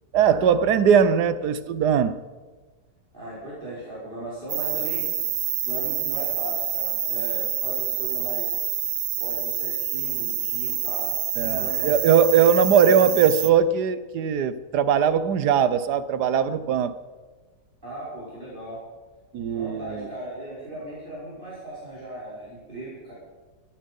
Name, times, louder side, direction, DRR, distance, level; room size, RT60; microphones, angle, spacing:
voice 1, 0.1-2.2 11.4-17.0 19.3-20.1, right 7 dB, 85° right, 1.4 m, -20 dB
voice 2, 3.1-5.1 5.6-8.5 9.2-12.0 12.8-13.3 17.8-18.8 19.5-23.1, right 1 dB, 30° right, 5.9 m, -37 dB
sound 1, 4.5-13.5, right 9 dB, 55° right, 0.9 m, -27 dB
17.5 x 14.0 x 5.4 m
omnidirectional pair, 1.7 m